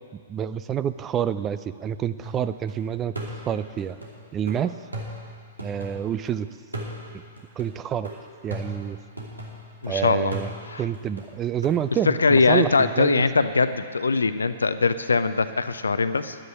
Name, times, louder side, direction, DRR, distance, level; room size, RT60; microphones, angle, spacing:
voice 1, 0.1-3.1 3.5-4.0 4.3-4.7 5.6-6.5 7.6-8.1 8.4-9.0 9.9-10.5 10.8-13.2, right 9 dB, 25° right, 13 dB, 0.4 m, -28 dB
sound 1, 2.2-2.7 3.2-6.3 6.7-9.9 10.3-11.8, right 1 dB, 85° right, 2.7 m, -38 dB
voice 2, 9.8-10.3 10.7-10.8 12.0-16.4, left 4 dB, 80° left, 12 dB, 0.6 m, -21 dB
11.0 x 9.8 x 8.3 m, 2.1 s
figure-of-eight pair, 110°, 0 cm